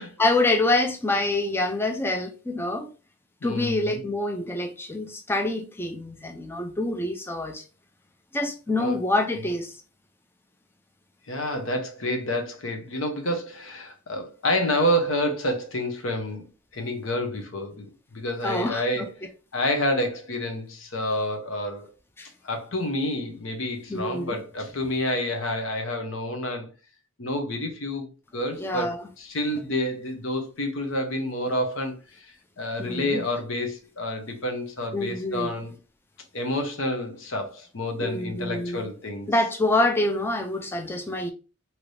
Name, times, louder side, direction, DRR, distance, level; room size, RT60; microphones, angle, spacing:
voice 1, 0.2-2.9 3.4-7.6 8.3-9.8 18.4-19.1 22.2-22.3 23.9-24.4 28.6-29.0 32.8-33.2 34.9-35.5 38.0-38.9 39.3-41.3, left 2 dB, 10° left, 0.4 m, -26 dB
voice 2, 3.4-4.0 8.7-9.0 11.3-16.5 16.7-19.2 19.5-21.9 22.4-26.7 27.2-35.7 36.3-39.3, left 1 dB, 75° left, 0.9 m, -29 dB
3.2 x 2.9 x 2.6 m
head